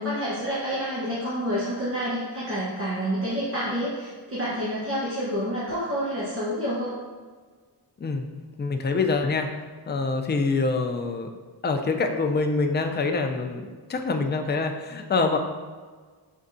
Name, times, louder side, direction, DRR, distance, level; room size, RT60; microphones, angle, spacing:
voice 1, 0.0-7.0, equal, 30° right, -9 dB, 1.0 m, -28 dB
voice 2, 8.6-9.5 9.9-11.3 11.6-15.4, left 3 dB, 25° left, 5 dB, 0.4 m, -25 dB
5.5 x 3.4 x 2.6 m, 1.5 s
wide cardioid pair, 100°, 43 cm